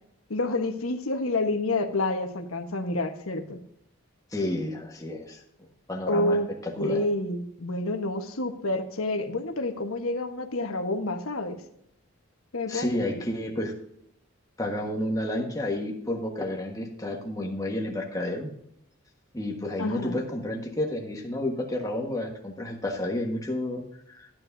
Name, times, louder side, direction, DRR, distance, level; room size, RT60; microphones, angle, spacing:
voice 1, 0.3-3.6 6.1-6.5 6.8-11.6 12.5-13.0 19.8-20.2, left 2 dB, 85° left, 6 dB, 1.3 m, -28 dB
voice 2, 4.3-5.4 5.9-7.0 12.7-13.7 14.6-18.5 19.3-23.8 24.1-24.3, left 1 dB, 15° left, 1 dB, 1.5 m, -30 dB
13.5 x 9.6 x 2.7 m, 0.72 s
head